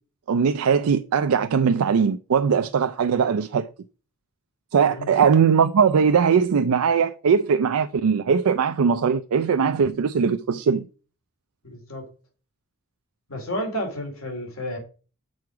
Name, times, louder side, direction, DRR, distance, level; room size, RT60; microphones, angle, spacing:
voice 1, 0.3-3.7 4.7-10.9, right 6 dB, 90° right, 0.4 m, -20 dB
voice 2, 11.6-12.1 13.3-14.8, equal, 75° left, 2.6 m, -31 dB
6.4 x 4.7 x 5.8 m
head